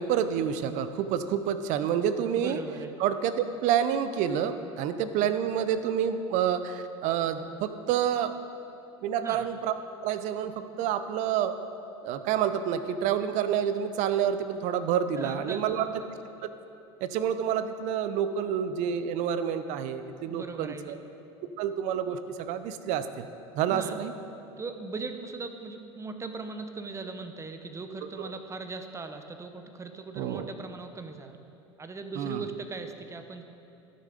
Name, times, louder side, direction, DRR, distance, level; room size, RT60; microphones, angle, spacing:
voice 1, 0.0-2.6 3.0-8.3 9.0-9.7 10.0-11.5 12.0-15.9 16.4-16.5 17.0-21.0 21.6-23.3 23.5-24.1 28.2-28.3 30.2-30.5 32.2-32.4, right 9 dB, 55° right, 11 dB, 0.7 m, -28 dB
voice 2, 2.3-2.9 9.2-9.5 15.1-16.0 20.2-21.0 23.7-24.0 24.6-31.4 31.8-33.4, right 4 dB, 20° right, 7 dB, 0.9 m, -39 dB
12.5 x 6.8 x 5.1 m, 2.8 s
hypercardioid pair, 75°, 15 cm